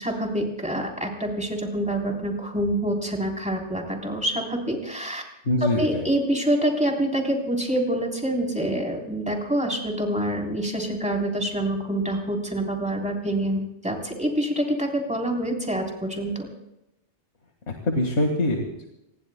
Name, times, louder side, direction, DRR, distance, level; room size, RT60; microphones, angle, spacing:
voice 1, 0.0-5.2 5.6-16.5, right 1 dB, 5° right, 0 dB, 3.6 m, -26 dB
voice 2, 5.5-6.0 17.7-18.9, left 1 dB, 80° left, 2 dB, 2.1 m, -24 dB
26.5 x 21.0 x 2.2 m, 0.90 s
omnidirectional pair, 1.2 m